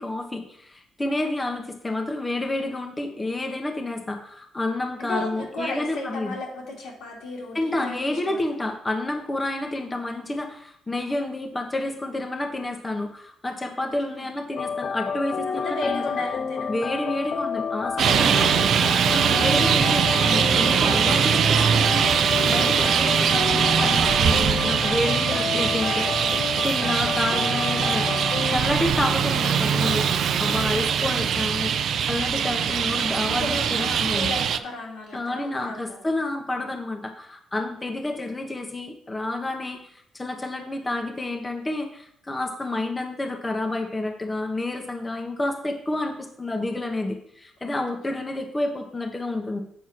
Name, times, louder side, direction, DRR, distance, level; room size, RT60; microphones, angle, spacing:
voice 1, 0.0-6.4 7.5-16.0 16.7-18.7 19.1-22.0 22.5-26.1 26.6-34.3 35.1-49.6, left 2 dB, 20° left, 3 dB, 1.1 m, -29 dB
voice 2, 5.1-8.6 14.0-14.3 15.4-16.7 30.7-31.1 33.4-36.0 47.6-47.8, left 2 dB, 85° left, -3 dB, 2.7 m, -34 dB
sound 1, 14.5-28.6, left 5 dB, 50° left, 0.6 m, -30 dB
Traffic noise roadway noise, 18.0-34.6, right 7 dB, 65° right, 0.5 m, -22 dB
7.7 x 4.5 x 5.9 m, 0.69 s
cardioid pair, 90°, 0 cm